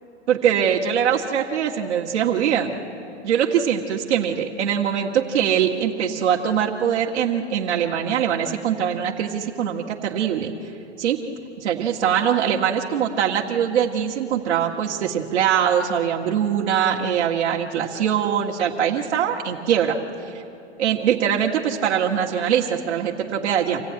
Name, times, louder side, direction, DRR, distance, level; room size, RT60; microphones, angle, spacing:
voice 1, 0.3-2.8 3.2-10.5 11.0-11.2 11.6-20.0 20.3-20.4 20.8-23.8, right 8 dB, 70° right, -2 dB, 1.8 m, -22 dB
26.0 x 15.5 x 9.5 m, 2.7 s
hypercardioid pair, 135°, 35 cm